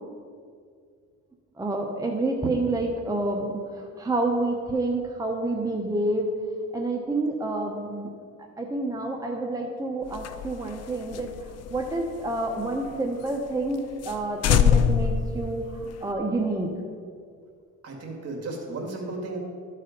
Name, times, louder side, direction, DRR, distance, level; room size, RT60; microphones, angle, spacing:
voice 1, 1.6-3.6 4.0-6.3 6.7-8.1 8.6-11.3 11.7-15.6 16.0-16.7, right 2 dB, 10° right, 1 dB, 0.9 m, -28 dB
sound 1, 10.1-12.9 13.3-13.4 13.7-13.8 14.0-14.2 14.4-16.1, left 7 dB, 55° left, 0.5 m, -24 dB
voice 2, 17.8-19.4, right 2 dB, 55° right, 0 dB, 2.2 m, -34 dB
12.5 x 4.3 x 5.2 m, 2.1 s
cardioid pair, 90°, 30 cm